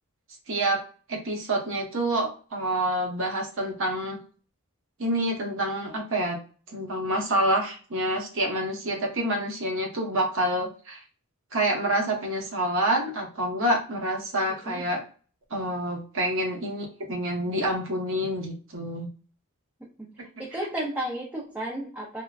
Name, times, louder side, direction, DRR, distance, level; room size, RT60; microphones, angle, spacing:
voice 1, 0.5-0.8 1.1-4.2 5.0-6.4 6.7-11.0 11.5-15.0 15.5-19.1, right 1 dB, 65° right, 1 dB, 0.9 m, -27 dB
voice 2, 14.5-14.8 20.0-20.1 20.4-22.2, right 1 dB, 10° right, -3 dB, 0.5 m, -33 dB
3.6 x 2.1 x 2.3 m, 0.39 s
head